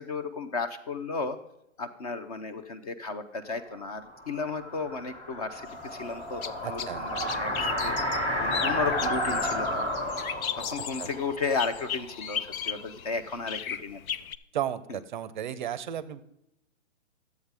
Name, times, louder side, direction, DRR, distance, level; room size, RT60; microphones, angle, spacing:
voice 1, 0.0-1.4 1.8-8.0 8.4-10.1 10.5-14.0 14.9-15.0, left 4 dB, 30° left, 10 dB, 0.5 m, -34 dB
sound 1, 3.8-12.7, equal, 10° left, 1.4 m, -32 dB
sound 2, 5.7-14.4, left 8 dB, 90° left, 0.6 m, -36 dB
voice 2, 6.6-7.0 11.0-11.1 14.5-16.2, right 10 dB, 35° right, 16 dB, 0.5 m, -34 dB
11.5 x 8.1 x 3.3 m, 0.84 s
hypercardioid pair, 145°, 41 cm